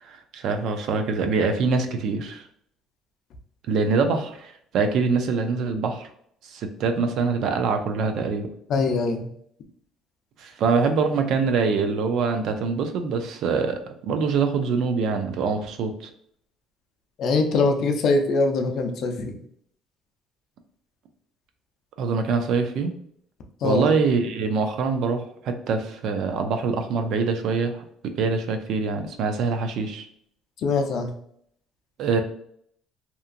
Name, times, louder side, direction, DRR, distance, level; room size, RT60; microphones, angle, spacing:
voice 1, 0.0-2.5 3.7-6.1 6.4-8.5 10.4-16.1 22.0-22.9 23.6-30.1 32.0-32.2, right 4 dB, 60° right, 6 dB, 0.4 m, -24 dB
voice 2, 8.7-9.3 17.2-19.4 23.6-23.9 30.6-31.1, left 3 dB, 55° left, 4 dB, 0.5 m, -23 dB
2.8 x 2.4 x 2.5 m, 0.67 s
cardioid pair, 140°, 0 cm